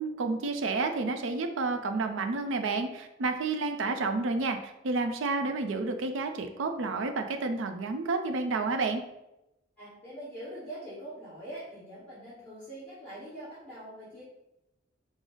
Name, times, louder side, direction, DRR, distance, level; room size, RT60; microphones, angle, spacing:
voice 1, 0.0-9.0, right 3 dB, 70° right, 7 dB, 0.4 m, -30 dB
voice 2, 9.8-14.2, right 1 dB, 5° left, -11 dB, 1.4 m, -43 dB
4.8 x 2.0 x 3.9 m, 0.92 s
head